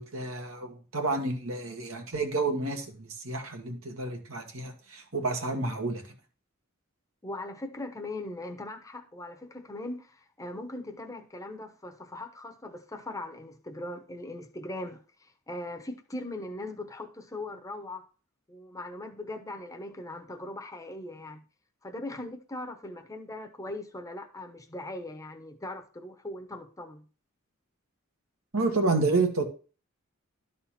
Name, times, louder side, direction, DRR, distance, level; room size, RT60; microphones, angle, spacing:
voice 1, 0.0-6.1 28.5-29.4, right 3 dB, 75° right, 1.8 m, -30 dB
voice 2, 7.2-18.1 18.5-21.4 21.8-27.0, left 2 dB, 15° left, 0.9 m, -40 dB
11.5 x 4.3 x 5.8 m
head